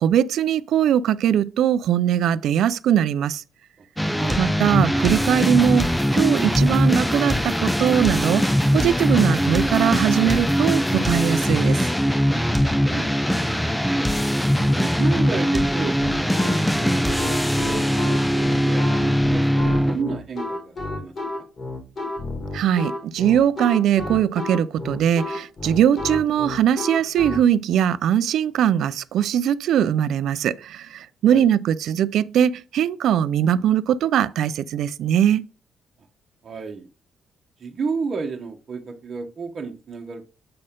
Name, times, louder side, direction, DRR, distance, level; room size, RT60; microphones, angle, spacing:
voice 1, 0.0-3.4 4.4-11.8 22.5-35.4, right 9 dB, 75° right, 0.4 m, -21 dB
sound 1, 4.0-20.0, equal, 5° left, 0.5 m, -21 dB
voice 2, 12.9-13.7 14.7-21.4 31.3-31.5 36.4-36.9 37.6-40.2, right 4 dB, 45° right, 1.1 m, -32 dB
sound 2, 16.0-27.4, left 2 dB, 40° left, 2.1 m, -31 dB
7.6 x 4.2 x 3.7 m
cardioid pair, 90°, 0 cm